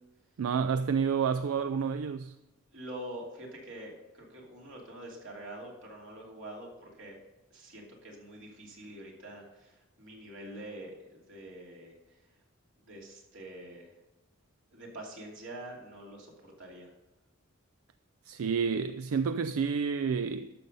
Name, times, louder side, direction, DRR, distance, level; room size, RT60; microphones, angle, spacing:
voice 1, 0.4-2.3 18.3-20.5, right 6 dB, 85° right, 0.4 m, -29 dB
voice 2, 2.7-7.2 7.5-12.2 12.8-13.9 14.7-16.9, right 1 dB, 65° right, 2.7 m, -45 dB
12.0 x 6.8 x 5.4 m
head